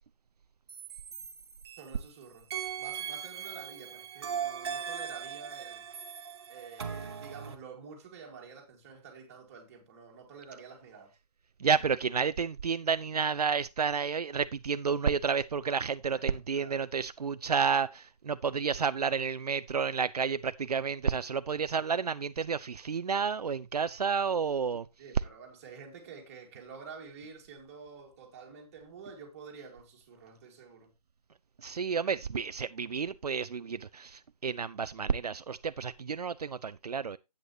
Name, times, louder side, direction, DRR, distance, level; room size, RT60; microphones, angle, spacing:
sound 1, 0.7-2.1 2.5-7.6, right 7 dB, 40° right, 1.2 m, -39 dB
voice 1, 1.8-2.5 2.8-5.8 6.5-11.2 16.1-16.9 25.0-30.9, right 5 dB, 25° right, 2.2 m, -49 dB
voice 2, 11.6-24.8 31.6-37.2, right 6 dB, 75° right, 0.5 m, -30 dB
10.5 x 8.3 x 2.9 m
figure-of-eight pair, 155°, 20 cm